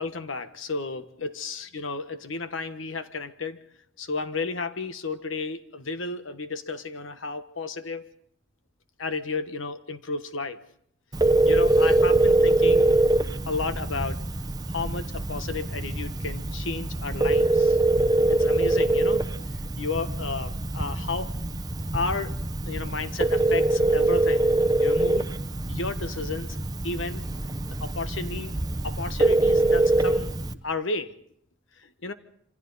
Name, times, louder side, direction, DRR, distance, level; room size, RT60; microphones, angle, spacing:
voice 1, 0.0-3.6 4.0-8.1 9.0-10.6 11.5-12.8 13.5-14.2 14.7-17.8 18.3-19.2 19.8-21.3 21.9-22.4 22.7-24.5 24.8-25.3 25.7-26.6 26.8-27.2 27.8-28.5 28.8-30.3 30.6-31.1 31.8-32.1, left 3 dB, 85° left, 10 dB, 1.3 m, -32 dB
Telephone, 11.1-30.5, right 2 dB, 20° right, 0.7 m, -24 dB
27.0 x 26.0 x 4.1 m, 0.69 s
head